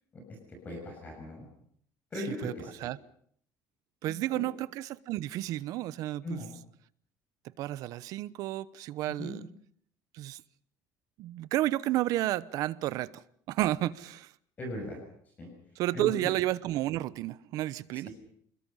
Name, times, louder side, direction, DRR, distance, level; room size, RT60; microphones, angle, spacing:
voice 1, 0.6-1.5 2.1-2.7 4.0-4.4 6.2-6.5 9.1-9.4 14.6-15.0 15.4-15.5 15.9-16.1 17.9-18.1, equal, 25° left, 6.5 m, -38 dB
voice 2, 4.0-6.4 7.6-9.5 10.1-10.4 11.2-13.1 13.5-14.3 15.8-18.1, right 15 dB, 55° right, 0.9 m, -31 dB
29.5 x 21.0 x 5.6 m
cardioid pair, 180°, 7 cm